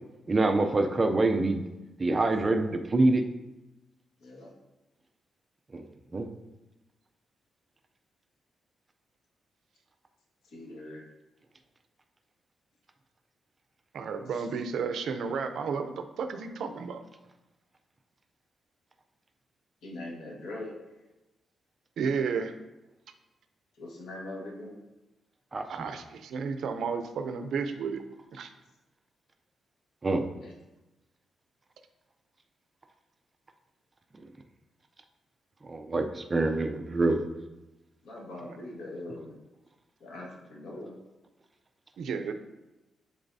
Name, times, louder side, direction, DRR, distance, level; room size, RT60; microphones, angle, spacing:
voice 1, 0.3-1.6 2.0-3.2 5.7-5.8 6.1-6.3 25.5-25.9 30.0-30.2 35.6-37.2, right 2 dB, 25° right, 6 dB, 0.4 m, -26 dB
voice 2, 2.1-2.4 4.2-4.5 10.4-11.0 14.3-14.5 19.8-20.7 23.8-24.8 30.3-30.5 38.0-39.4 40.0-41.0, left 2 dB, 85° left, -2 dB, 1.6 m, -42 dB
voice 3, 13.9-17.0 22.0-22.5 25.7-28.0 28.3-28.5 38.5-38.6 42.0-42.3, right 5 dB, 70° right, 7 dB, 0.5 m, -32 dB
10.5 x 4.0 x 2.7 m, 1.0 s
wide cardioid pair, 155°, 0 cm